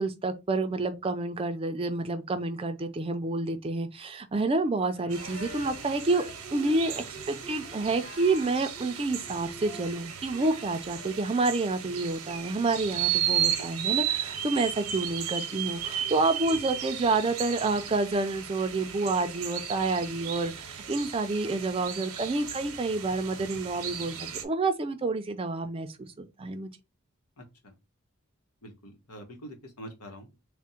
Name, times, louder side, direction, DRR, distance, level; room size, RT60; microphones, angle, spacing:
voice 1, 0.0-26.7, right 3 dB, 25° right, 0.4 m, -29 dB
Livestock farm animals working animals, 4.7-5.9 7.2-8.7, left 3 dB, 40° left, 0.7 m, -50 dB
Female singing, 5.1-11.5, right 1 dB, 70° left, 2.0 m, -48 dB
sound 1, 5.1-24.4, right 10 dB, 90° right, 0.8 m, -35 dB
voice 2, 27.4-27.7 28.6-30.4, equal, 90° left, 1.1 m, -46 dB
3.4 x 2.1 x 4.2 m
head